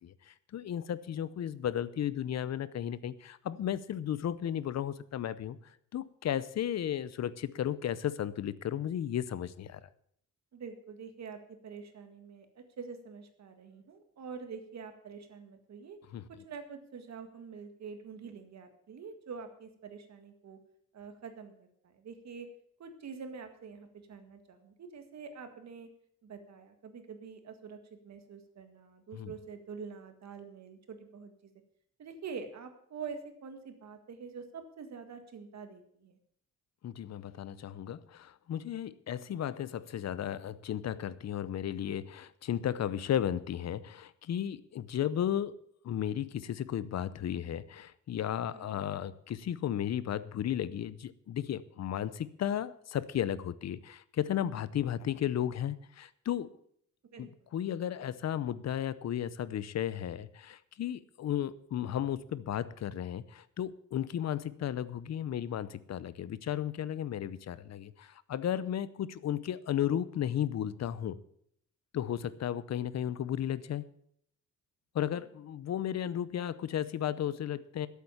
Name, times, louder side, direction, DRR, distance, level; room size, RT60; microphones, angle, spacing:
voice 1, 0.0-5.6 5.9-9.8 16.1-16.2 29.1-29.3 36.8-45.5 45.8-56.5 57.2-71.2 71.9-73.8 74.9-77.9, left 10 dB, 55° left, 17 dB, 0.7 m, -34 dB
voice 2, 10.5-16.0 16.4-20.6 20.9-22.5 22.8-25.9 26.2-31.5 32.0-36.2 48.5-48.8 57.1-57.5 75.1-75.2, right 5 dB, 60° right, 7 dB, 1.9 m, -46 dB
12.5 x 8.3 x 7.1 m, 0.68 s
wide cardioid pair, 145°, 31 cm